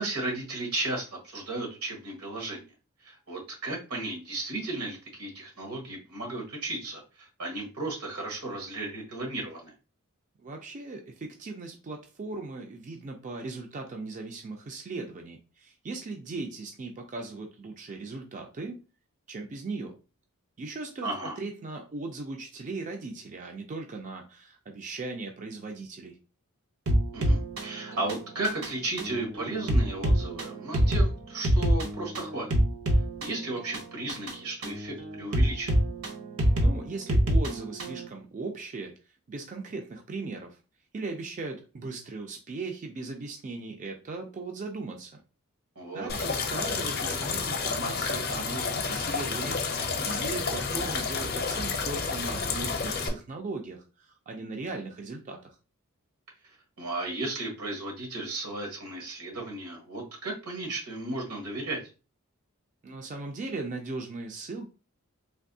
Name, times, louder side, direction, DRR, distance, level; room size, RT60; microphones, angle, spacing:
voice 1, 0.0-2.6 3.0-9.7 21.0-21.4 27.1-32.5 33.2-35.8 45.7-46.1 56.8-61.8, right 2 dB, 80° right, 0 dB, 1.3 m, -34 dB
voice 2, 10.4-18.8 19.3-19.9 20.6-21.1 21.4-26.2 36.5-38.9 39.3-40.6 40.9-45.2 45.9-55.5 62.8-64.6, right 3 dB, 35° right, 2 dB, 0.4 m, -38 dB
sound 1, 26.9-38.1, equal, 65° right, 0.7 m, -27 dB
sound 2, 46.1-53.1, left 4 dB, 45° left, 0.6 m, -30 dB
3.4 x 2.6 x 2.6 m, 0.33 s
head